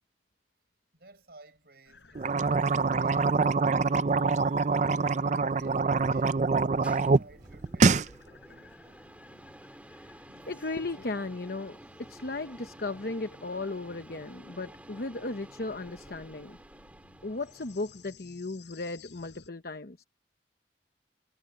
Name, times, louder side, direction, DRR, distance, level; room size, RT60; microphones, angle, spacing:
voice 1, 0.9-3.8 4.4-6.4 6.8-9.0 10.3-10.5, right 2 dB, 60° right, 6.8 m, -57 dB
sound 1, 1.9-19.5, left 3 dB, 85° left, 5.2 m, -57 dB
sound 2, 2.1-7.2 7.5-8.1, right 4 dB, 40° right, 0.5 m, -25 dB
sound 3, 6.4-18.1, right 1 dB, 10° right, 1.9 m, -51 dB
voice 2, 10.5-11.8 12.1-16.6 17.2-20.0, left 2 dB, 60° left, 1.0 m, -36 dB
head